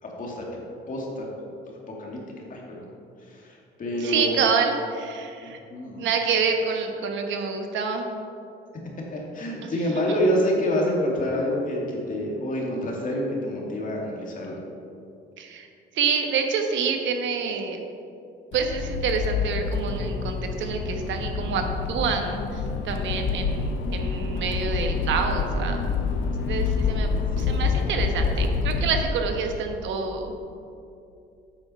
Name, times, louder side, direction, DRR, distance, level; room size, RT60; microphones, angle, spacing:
voice 1, 0.0-0.4 0.9-1.3 1.9-2.2 2.5-2.9 3.2-4.4 5.4-6.0 9.1-14.6 27.3-27.9, equal, 45° left, -2 dB, 2.3 m, -27 dB
voice 2, 4.0-5.6 6.0-8.1 9.6-9.7 15.4-15.7 15.9-17.8 18.5-25.9 26.4-27.1 27.4-30.3, right 5 dB, 80° right, 4 dB, 1.1 m, -27 dB
Accelerating revving vroom, 18.5-29.0, left 4 dB, 80° left, 0.8 m, -27 dB
8.6 x 6.2 x 5.6 m, 2.6 s
cardioid pair, 105°, 19 cm